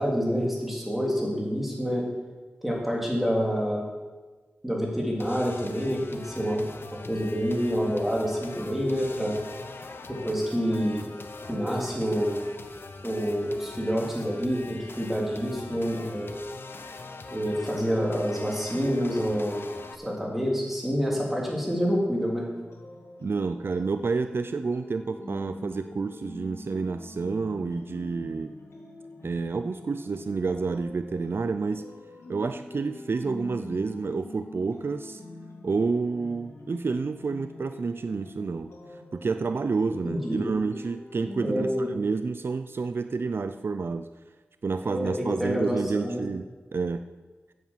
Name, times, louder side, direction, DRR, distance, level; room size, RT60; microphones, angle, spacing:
voice 1, 0.0-2.0 2.6-3.8 4.6-6.7 7.1-9.4 10.1-11.0 11.5-12.3 13.0-16.3 17.3-19.6 20.0-22.5 40.0-40.4 41.4-41.9 44.8-46.2, equal, 5° right, -3 dB, 3.3 m, -27 dB
sound 1, 5.2-20.0, left 3 dB, 60° left, 0.8 m, -42 dB
sound 2, 22.1-41.7, left 2 dB, 85° left, 2.0 m, -44 dB
voice 2, 23.2-28.5 29.2-31.9 32.3-35.2 35.6-38.7 39.1-44.1 44.6-47.1, right 4 dB, 60° right, 10 dB, 0.4 m, -29 dB
9.0 x 8.4 x 7.3 m, 1.3 s
wide cardioid pair, 90°, 4 cm